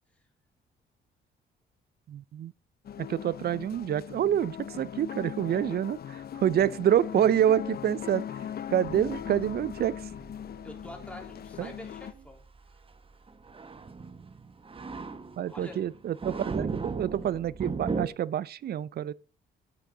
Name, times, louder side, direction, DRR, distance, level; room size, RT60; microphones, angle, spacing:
voice 1, 2.1-2.5 3.0-8.2 8.7-10.0 11.6-11.7 15.4-19.1, right 10 dB, 55° right, 0.5 m, -27 dB
sound 1, 2.8-12.1, left 9 dB, 50° left, 0.7 m, -40 dB
sound 2, 8.8-18.1, right 4 dB, 25° right, 1.1 m, -38 dB
voice 2, 10.6-12.4 15.5-15.8, left 1 dB, 5° left, 3.6 m, -45 dB
11.0 x 8.2 x 3.9 m
cardioid pair, 90°, 20 cm